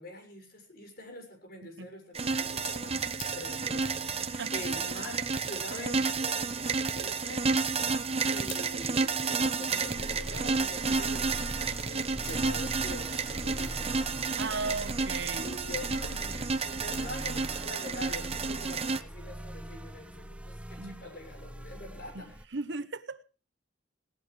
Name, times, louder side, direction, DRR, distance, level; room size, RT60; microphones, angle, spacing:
voice 1, 0.0-7.5 8.3-14.8 15.1-22.4, left 1 dB, 55° left, 6.8 m, -45 dB
sound 1, 2.1-19.0, right 4 dB, 30° right, 1.0 m, -31 dB
sound 2, 2.2-17.1, left 2 dB, 85° left, 6.9 m, -49 dB
voice 2, 4.1-4.5 14.4-15.5 20.8-21.0 22.1-22.2 22.5-23.2, right 3 dB, 65° right, 1.0 m, -36 dB
sound 3, 9.9-22.4, equal, 5° right, 0.7 m, -42 dB
19.5 x 18.5 x 3.3 m
head